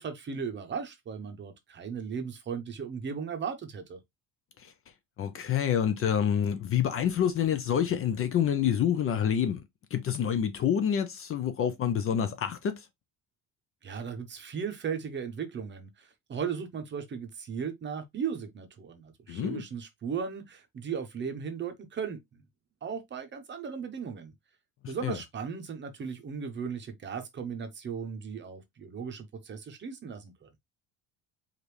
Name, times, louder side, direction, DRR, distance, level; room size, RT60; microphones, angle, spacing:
voice 1, 0.0-4.0 13.8-22.4 22.8-24.3 24.9-30.5, right 6 dB, 30° right, 0.8 m, -37 dB
voice 2, 5.2-9.6 9.9-12.9 19.3-19.6 24.8-25.2, left 9 dB, 35° left, 0.5 m, -27 dB
5.0 x 2.6 x 3.2 m
cardioid pair, 155°, 38 cm